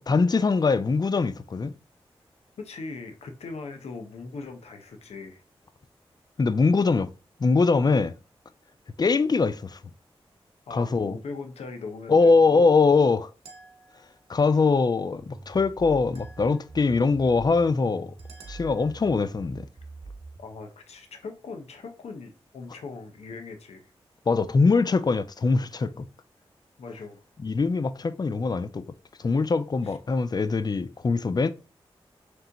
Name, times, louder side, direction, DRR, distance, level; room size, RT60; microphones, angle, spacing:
voice 1, 0.1-1.7 6.4-7.1 7.4-8.1 9.0-9.8 10.7-11.2 12.1-13.3 14.3-18.1 18.5-19.7 24.3-25.9 27.4-28.8 29.2-31.5, left 4 dB, 40° left, 0.4 m, -22 dB
voice 2, 2.6-5.4 10.7-12.7 20.4-23.9 26.8-27.2 29.8-30.0, left 4 dB, 85° left, 0.7 m, -40 dB
sound 1, 13.4-14.2 16.1-16.9 18.2-19.2, right 3 dB, 85° right, 1.0 m, -52 dB
sound 2, 15.2-20.6, right 3 dB, 45° right, 0.8 m, -44 dB
3.3 x 3.0 x 3.9 m
cardioid pair, 45°, 10 cm